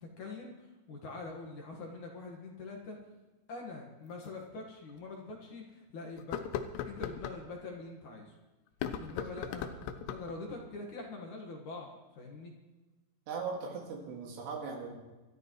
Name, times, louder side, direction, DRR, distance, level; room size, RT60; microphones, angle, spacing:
voice 1, 0.0-3.0 3.5-6.4 6.8-8.3 8.9-9.7 10.1-12.5, left 3 dB, 55° left, 0 dB, 2.5 m, -44 dB
sound 1, 4.2-4.3 4.9-5.0 6.2-7.4 8.7-10.4, left 8 dB, 80° left, 2.8 m, -38 dB
voice 2, 13.3-15.0, right 5 dB, 85° right, -1 dB, 4.2 m, -39 dB
25.5 x 13.0 x 3.1 m, 1.1 s
omnidirectional pair, 4.9 m